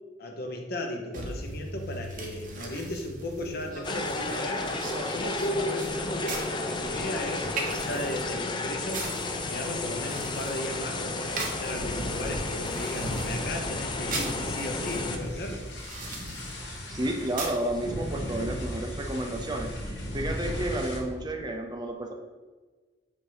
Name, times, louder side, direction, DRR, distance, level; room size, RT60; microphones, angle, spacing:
voice 1, 0.2-4.7 5.1-9.1 9.5-15.6, left 1 dB, 60° left, 3 dB, 0.9 m, -35 dB
sound 1, 1.1-17.7, right 2 dB, 50° right, 1.0 m, -40 dB
sound 2, 3.8-15.2, left 3 dB, 25° left, 0.5 m, -33 dB
sound 3, 11.8-21.0, equal, 75° left, 1.3 m, -36 dB
voice 2, 16.9-22.1, right 1 dB, 25° right, 3 dB, 0.5 m, -31 dB
7.8 x 2.8 x 4.7 m, 1.4 s
head